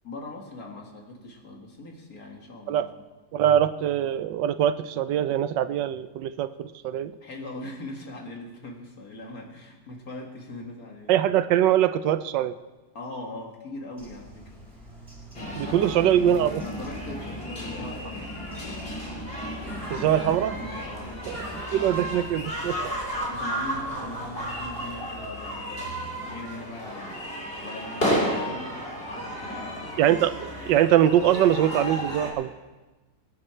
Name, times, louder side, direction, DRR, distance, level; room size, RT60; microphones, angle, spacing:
voice 1, 0.0-3.0 7.2-11.2 12.9-14.7 15.4-16.2 16.6-19.2 19.9-20.2 20.6-22.2 23.3-27.2 27.6-30.0, left 2 dB, 50° left, 1 dB, 2.4 m, -41 dB
voice 2, 3.3-7.1 11.1-12.5 15.6-16.6 19.9-20.6 21.3-21.4 21.7-22.9 30.0-32.5, right 11 dB, 80° right, 12 dB, 1.2 m, -23 dB
Bird, 14.0-25.0, right 1 dB, 30° right, 5.1 m, -45 dB
sound 1, 15.3-32.3, equal, 30° left, 3.3 m, -33 dB
sound 2, 15.4-15.6 15.9-16.0 16.3-16.5 17.1-17.2 17.7-17.9 18.3-18.4 18.6-18.9 19.5-19.6 20.1-20.4 21.0-21.1, left 3 dB, 80° left, 2.0 m, -46 dB
23.5 x 9.9 x 4.4 m, 1.2 s
omnidirectional pair, 2.0 m